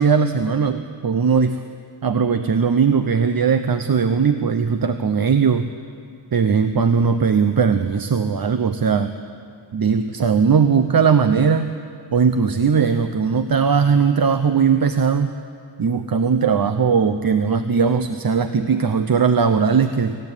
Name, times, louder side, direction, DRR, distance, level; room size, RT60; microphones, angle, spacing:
voice 1, 0.0-1.6 2.0-5.7 6.3-9.1 9.7-11.8 12.1-15.3 15.8-20.2, right 6 dB, 45° right, 9 dB, 0.9 m, -19 dB
26.5 x 14.5 x 9.1 m, 2.2 s
wide cardioid pair, 95°, 48 cm